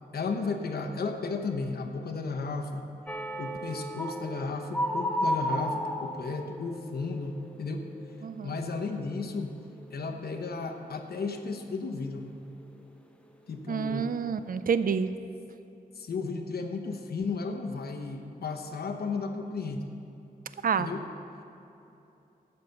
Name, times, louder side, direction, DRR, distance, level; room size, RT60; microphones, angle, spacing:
voice 1, 0.1-2.8 3.4-7.9 8.4-9.5 9.9-12.3 13.5-14.1 16.0-19.9 20.8-21.0, left 4 dB, 80° left, 4 dB, 1.0 m, -34 dB
sound 1, 3.1-8.8 9.1-9.5 9.9-10.1, equal, 5° left, 0.7 m, -34 dB
voice 2, 8.2-8.5 13.7-15.1 20.6-20.9, right 6 dB, 65° right, 12 dB, 0.5 m, -28 dB
12.0 x 8.0 x 5.9 m, 2.9 s
wide cardioid pair, 105°, 16 cm